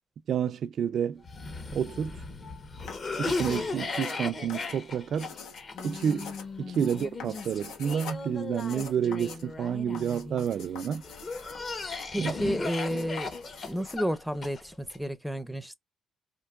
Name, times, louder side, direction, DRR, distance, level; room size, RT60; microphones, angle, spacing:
voice 1, 0.3-1.2 1.7-2.2 3.2-5.3 5.8-11.0 12.2-12.3, right 8 dB, 60° right, 0.3 m, -30 dB
Cough, 1.2-10.5 11.0-15.0, left 3 dB, 40° left, 1.1 m, -37 dB
sound 1, 2.8-14.0, left 6 dB, 85° left, 1.0 m, -45 dB
voice 2, 12.1-13.3 13.6-15.7, equal, ahead, 0.6 m, -31 dB
4.4 x 2.6 x 2.4 m
cardioid pair, 90°, 0 cm